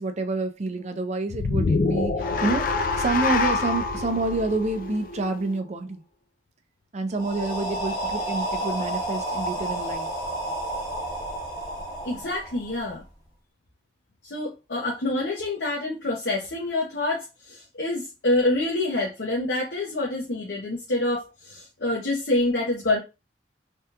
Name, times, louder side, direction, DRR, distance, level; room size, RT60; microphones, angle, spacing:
voice 1, 0.0-6.0 6.9-10.1, right 2 dB, 40° right, 0.5 m, -28 dB
sound 1, 1.3-5.7, left 3 dB, 50° left, 0.4 m, -26 dB
sound 2, 7.1-13.1, right 1 dB, 25° left, 0.9 m, -31 dB
voice 2, 12.0-13.0 14.2-23.0, left 2 dB, 70° left, 0.8 m, -27 dB
3.4 x 2.3 x 2.8 m
head